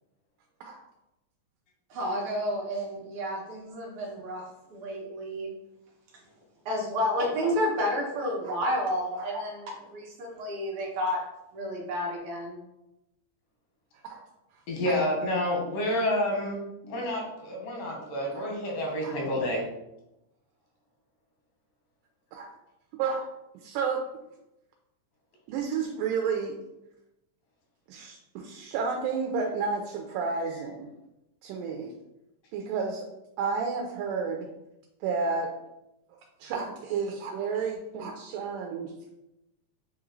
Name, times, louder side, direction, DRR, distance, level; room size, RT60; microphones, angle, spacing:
voice 1, 1.9-4.4 4.7-5.5 6.6-11.2 11.5-12.6, equal, 70° right, -2 dB, 1.4 m, -30 dB
voice 2, 14.7-19.6, left 1 dB, 90° left, -1 dB, 2.8 m, -29 dB
voice 3, 22.9-23.3 23.5-24.0 25.5-26.6 27.9-30.9 31.4-31.9 32.5-33.1 33.4-34.5 35.0-35.5 36.4-38.9, right 5 dB, 85° right, 2 dB, 2.2 m, -31 dB
7.0 x 2.4 x 3.0 m, 0.90 s
omnidirectional pair, 3.8 m